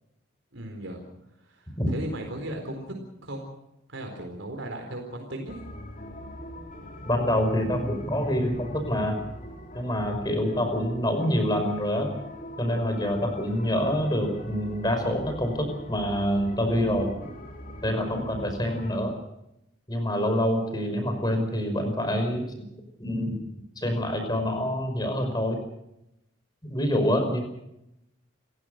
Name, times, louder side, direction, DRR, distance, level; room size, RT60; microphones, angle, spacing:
voice 1, 0.5-1.0 1.4-2.9 3.2-3.5 3.9-5.6, right 1 dB, 75° right, 3 dB, 4.2 m, -36 dB
sound 1, 5.5-19.0, left 1 dB, 40° left, 3.5 m, -42 dB
voice 2, 7.1-9.2 9.7-12.1 12.6-17.1 17.8-19.1 19.9-22.5 23.0-23.4 23.8-25.6 26.6-27.4, equal, 20° left, 6 dB, 5.4 m, -26 dB
29.5 x 15.5 x 6.6 m, 0.84 s
head